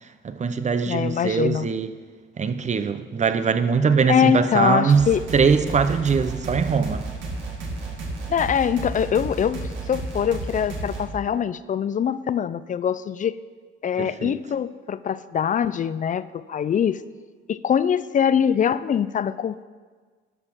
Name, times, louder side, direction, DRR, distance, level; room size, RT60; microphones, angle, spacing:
voice 1, 0.2-1.9 2.4-5.0 5.3-7.0 14.0-14.4, right 5 dB, 35° right, 11 dB, 0.8 m, -22 dB
voice 2, 0.9-1.7 4.1-5.2 8.3-13.4 13.8-17.0 17.5-19.6, left 8 dB, 40° left, 16 dB, 0.4 m, -23 dB
sound 1, 4.9-11.1, right 2 dB, 75° right, 2.1 m, -32 dB
12.0 x 6.0 x 6.1 m, 1.5 s
cardioid pair, 90°, 20 cm